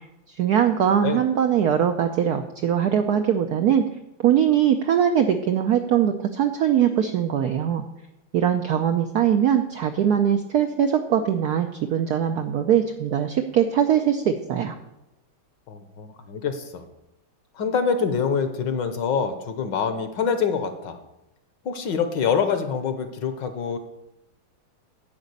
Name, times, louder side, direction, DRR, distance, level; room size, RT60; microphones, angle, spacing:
voice 1, 0.4-3.8 4.2-7.8 8.3-14.7, right 9 dB, 75° right, 6 dB, 0.9 m, -21 dB
voice 2, 15.7-16.9 17.6-21.0 21.6-23.8, left 6 dB, 65° left, 8 dB, 1.5 m, -25 dB
10.5 x 5.0 x 8.2 m, 0.90 s
omnidirectional pair, 2.3 m